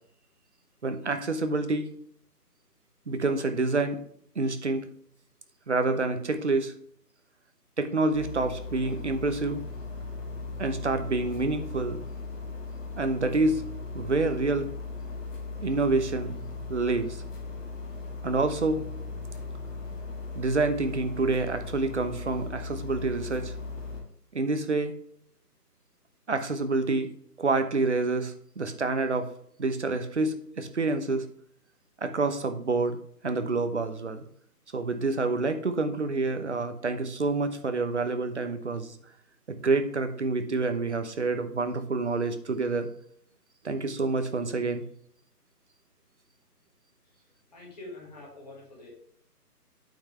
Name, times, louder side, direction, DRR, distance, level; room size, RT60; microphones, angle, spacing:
voice 1, 0.8-1.9 3.1-4.0 4.3-4.9 5.7-6.7 7.8-9.6 10.6-12.0 13.0-13.6 13.9-14.7 15.6-16.3 16.7-17.2 18.2-18.9 20.3-23.5 24.3-24.9 26.3-27.1 27.4-29.3 29.6-31.2 32.0-33.0 33.2-34.2 34.7-39.0 39.5-42.9 43.6-44.8, right 3 dB, 45° right, 9 dB, 0.9 m, -27 dB
sound 1, 8.1-24.0, left 3 dB, 50° left, 2.3 m, -38 dB
voice 2, 47.5-48.9, left 2 dB, 25° left, -4 dB, 2.4 m, -45 dB
8.8 x 5.6 x 3.2 m, 0.64 s
hypercardioid pair, 170°, 48 cm